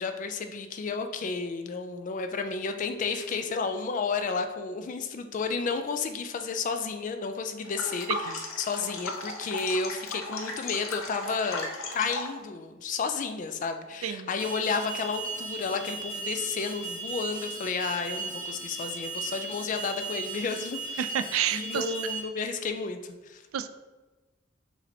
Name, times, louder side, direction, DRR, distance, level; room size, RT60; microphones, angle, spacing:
voice 1, 0.0-11.7 11.9-21.0 21.5-23.4, left 4 dB, 40° left, 7 dB, 0.3 m, -32 dB
sound 1, 7.6-12.4, left 3 dB, 85° left, 0.7 m, -36 dB
Alarm, 14.4-22.2, right 3 dB, 10° left, 0.9 m, -37 dB
voice 2, 21.0-21.9 23.5-23.7, right 9 dB, 90° right, 11 dB, 0.3 m, -30 dB
4.9 x 3.2 x 2.7 m, 1.2 s
head